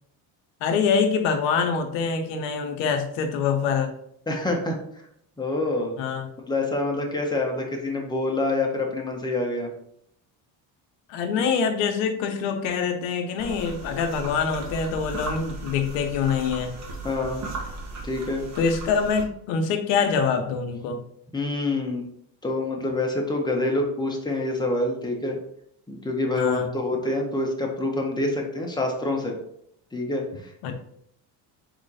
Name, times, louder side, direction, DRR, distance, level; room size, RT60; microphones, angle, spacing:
voice 1, 0.6-3.9 6.0-6.3 11.1-16.8 18.6-21.0 26.3-26.7 30.6-30.7, left 6 dB, 80° left, 6 dB, 0.9 m, -25 dB
voice 2, 4.3-5.0 5.4-6.0 6.5-9.7 17.0-17.5 18.0-18.4 21.3-22.0 22.4-25.4 25.9-29.4 29.9-30.7, left 2 dB, 10° left, 0 dB, 1.1 m, -26 dB
sound 1, 13.4-19.2, right 3 dB, 35° right, 1.3 m, -36 dB
4.1 x 3.0 x 4.0 m, 0.70 s
supercardioid pair, 95°, 44 cm